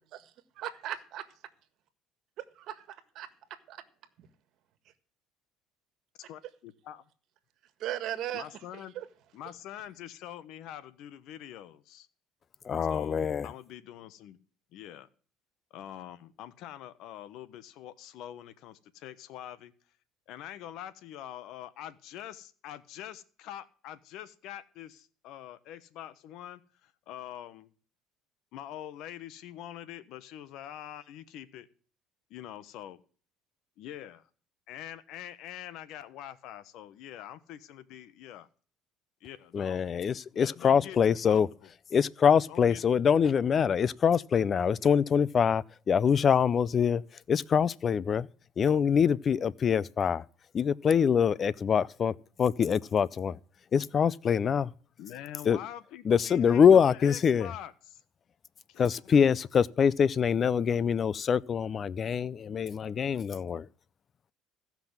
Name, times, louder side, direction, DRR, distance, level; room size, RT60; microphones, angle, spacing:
voice 1, 0.1-1.2 2.5-3.8 4.2-4.3 7.8-8.5 8.7-9.0, right 12 dB, 60° right, 1.6 m, -38 dB
voice 2, 6.2-7.0 8.3-9.0 9.3-12.1 12.9-13.2 13.4-14.4 14.7-15.1 15.7-19.7 20.3-27.7 28.5-31.7 32.3-33.0 33.8-34.3 34.7-38.5 39.2-39.8 40.3-41.7 42.5-42.8 55.0-58.0 58.7-59.2, left 11 dB, 65° left, 1.1 m, -45 dB
voice 3, 12.7-13.5 39.5-41.5 41.9-47.0 47.3-48.3 48.6-50.2 50.5-53.4 53.7-54.7 55.5-55.6 56.1-57.5 58.8-63.6, left 7 dB, 35° left, 0.5 m, -24 dB
15.0 x 6.0 x 7.2 m
supercardioid pair, 105°, 0 cm